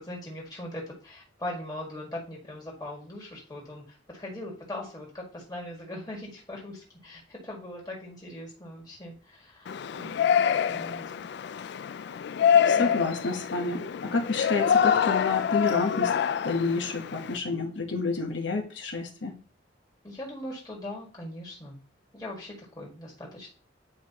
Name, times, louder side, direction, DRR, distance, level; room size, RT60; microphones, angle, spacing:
voice 1, 0.0-10.3 10.7-11.2 12.7-13.1 20.0-21.8 22.1-23.5, left 1 dB, 20° left, -3 dB, 1.8 m, -40 dB
Yell, 9.7-17.4, left 8 dB, 60° left, 0.3 m, -26 dB
voice 2, 12.7-16.1 16.4-19.4, left 3 dB, 75° left, 3 dB, 1.0 m, -29 dB
9.1 x 4.6 x 2.9 m, 0.39 s
head